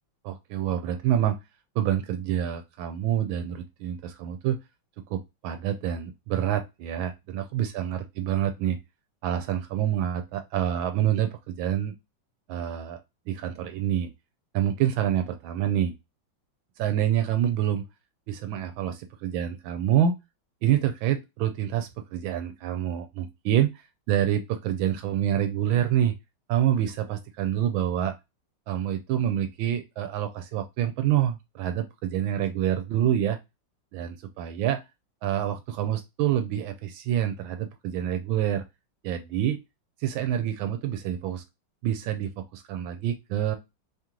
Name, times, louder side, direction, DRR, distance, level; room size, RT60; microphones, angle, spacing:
voice 1, 0.2-1.4 1.8-4.6 5.1-8.8 9.2-11.9 12.5-13.0 13.3-14.1 14.5-15.9 16.8-17.9 18.3-20.1 20.6-23.8 24.1-26.1 26.5-28.1 28.7-33.4 33.9-34.8 35.2-38.6 39.0-39.6 40.0-41.4 41.8-43.6, right 10 dB, 85° right, 7 dB, 1.4 m, -27 dB
3.2 x 2.9 x 3.6 m, 0.22 s
omnidirectional pair, 2.1 m